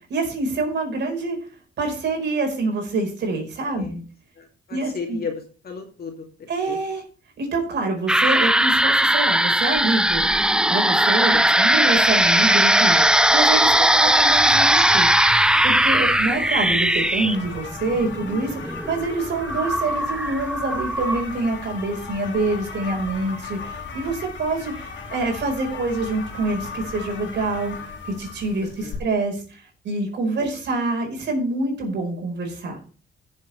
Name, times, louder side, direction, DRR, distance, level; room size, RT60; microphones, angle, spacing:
voice 1, 0.1-1.4 1.8-4.0 4.7-5.2 6.5-7.0 7.4-10.3 10.7-15.1 15.6-27.7 28.0-32.8, right 3 dB, 65° right, 1 dB, 4.6 m, -26 dB
voice 2, 4.4-6.8 11.3-11.6 16.0-16.4 28.6-29.0 30.4-30.6, left 5 dB, 50° left, 2 dB, 2.5 m, -35 dB
sound 1, 8.1-21.2, right 1 dB, 5° right, 0.6 m, -19 dB
sound 2, 12.0-29.0, left 4 dB, 70° left, 3.0 m, -37 dB
16.0 x 7.3 x 3.3 m, 0.38 s
cardioid pair, 90°, 20 cm